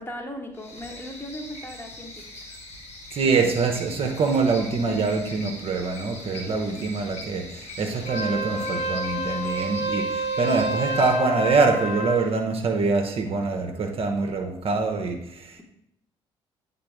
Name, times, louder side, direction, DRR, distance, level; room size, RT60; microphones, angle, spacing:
voice 1, 0.0-2.5 3.2-3.6 6.6-6.9, equal, 15° left, 2 dB, 1.2 m, -38 dB
sound 1, 0.5-11.2, left 1 dB, 50° left, 1.4 m, -41 dB
voice 2, 3.1-15.6, right 4 dB, 40° right, 4 dB, 0.8 m, -24 dB
Wind instrument woodwind instrument, 8.0-12.2, right 1 dB, 65° left, 2.6 m, -29 dB
8.7 x 3.8 x 3.6 m, 0.78 s
figure-of-eight pair, 45°, 14 cm